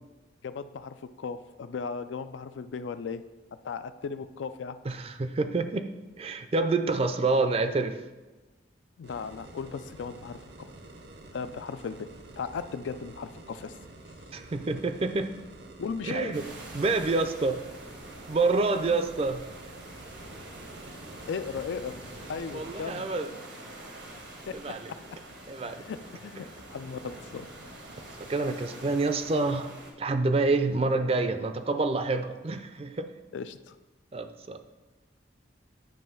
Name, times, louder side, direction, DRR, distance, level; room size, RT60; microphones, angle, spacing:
voice 1, 0.4-3.2 3.5-4.8 9.0-10.7 11.3-13.8 15.8-16.4 21.3-22.0 22.3-23.1 24.5-25.0 25.8-27.5 33.3-33.8, left 5 dB, 90° left, 12 dB, 0.4 m, -37 dB
voice 2, 4.9-5.9 6.2-8.0 14.3-15.3 16.0-16.4 16.7-17.6 18.3-19.4 22.5-23.3 24.5-24.9 25.5-25.8 28.3-29.7 30.0-33.1 34.1-34.6, right 3 dB, 30° right, 9 dB, 0.4 m, -27 dB
sound 1, 9.0-22.9, right 2 dB, 65° right, 0.7 m, -48 dB
sound 2, 16.3-29.9, right 1 dB, 80° right, 1.3 m, -46 dB
8.9 x 3.1 x 5.5 m, 1.2 s
head